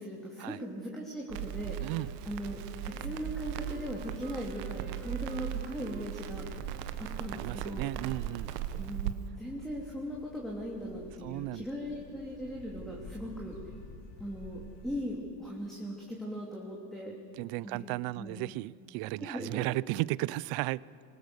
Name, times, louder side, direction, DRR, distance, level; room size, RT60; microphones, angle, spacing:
voice 1, 0.0-1.8 2.2-7.9 8.8-13.6 14.2-17.2 17.6-18.4 19.2-19.6, equal, ahead, -3 dB, 2.7 m, -39 dB
Crackle, 1.3-9.1, right 11 dB, 75° right, 1.3 m, -38 dB
voice 2, 1.8-2.1 7.4-8.5 11.2-11.6 17.4-20.8, right 19 dB, 50° right, 22 dB, 0.5 m, -34 dB
Wind instrument woodwind instrument, 2.8-7.9, right 5 dB, 20° right, 1.3 m, -52 dB
sound 1, 4.2-15.0, left 3 dB, 75° left, 5.4 m, -52 dB
25.0 x 20.5 x 6.7 m, 2.4 s
supercardioid pair, 125°, 47 cm